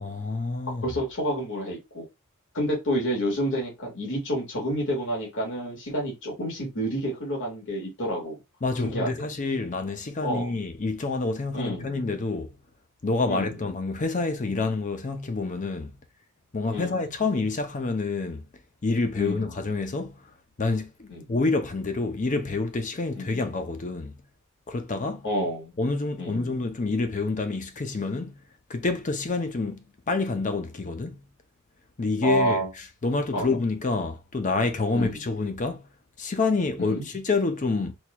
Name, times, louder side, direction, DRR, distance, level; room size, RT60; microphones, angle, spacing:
voice 1, 0.0-0.8 8.6-12.5 13.0-16.0 16.5-18.5 18.8-20.3 20.6-24.2 24.7-25.2 25.8-28.4 28.7-29.8 30.1-31.2 32.0-35.9 36.2-37.9, left 3 dB, 35° left, 0.6 m, -28 dB
voice 2, 0.8-2.0 2.5-8.4 8.8-9.3 10.2-10.5 11.5-12.0 13.3-13.5 16.7-17.1 19.2-19.5 21.1-21.2 23.2-23.3 25.2-25.7 26.2-26.5 32.2-32.7 33.3-33.5 34.9-35.2 36.8-37.0, equal, 55° left, 1.8 m, -29 dB
4.4 x 3.0 x 2.3 m
head